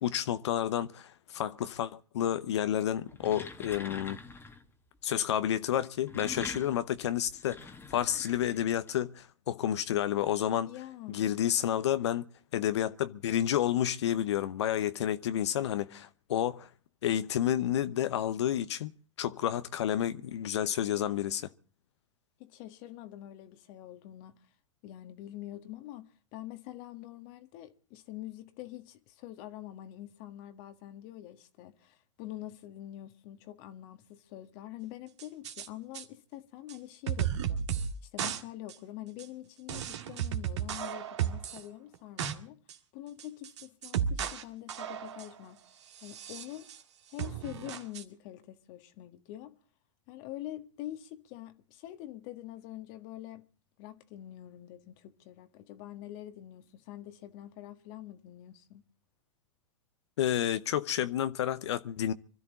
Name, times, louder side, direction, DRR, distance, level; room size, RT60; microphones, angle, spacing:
voice 1, 0.0-4.2 5.0-10.7 11.1-12.3 12.5-16.7 17.0-18.9 19.2-21.5 60.2-62.1, left 10 dB, 60° left, 0.8 m, -30 dB
sound 1, 3.1-4.7 5.8-8.9, left 3 dB, 15° left, 1.7 m, -45 dB
voice 2, 10.6-11.2 22.4-24.3 24.8-42.6 42.9-45.6 46.0-46.7 47.1-49.5 50.1-53.4 53.8-58.8, left 14 dB, 45° left, 1.6 m, -45 dB
sound 2, 35.2-35.7 35.9-36.0 36.7-36.8 37.1-37.9 38.2-38.4 38.7-38.8 39.2-39.3 39.7-41.6 41.9-42.3 42.7-42.8 43.2-44.4 44.7-45.3 46.0-46.8 47.2-48.0, right 9 dB, 60° right, 1.8 m, -34 dB
25.0 x 13.5 x 4.1 m
figure-of-eight pair, 95°, 16 cm